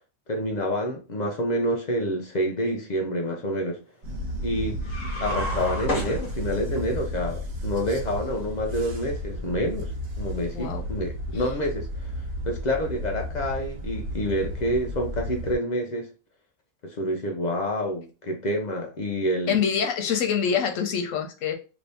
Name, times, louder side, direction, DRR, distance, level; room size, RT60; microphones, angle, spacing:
voice 1, 0.3-3.8 4.4-4.8 5.2-9.9 10.2-12.1 12.5-16.1 16.8-19.6, equal, 60° left, 0.4 m, -28 dB
sound 1, 4.0-15.6, equal, 85° right, 1.2 m, -33 dB
sound 2, 4.8-6.8, left 1 dB, 35° left, 1.0 m, -31 dB
voice 2, 10.5-10.8 19.5-21.5, left 7 dB, 80° left, 1.1 m, -25 dB
3.0 x 2.6 x 3.3 m
omnidirectional pair, 1.4 m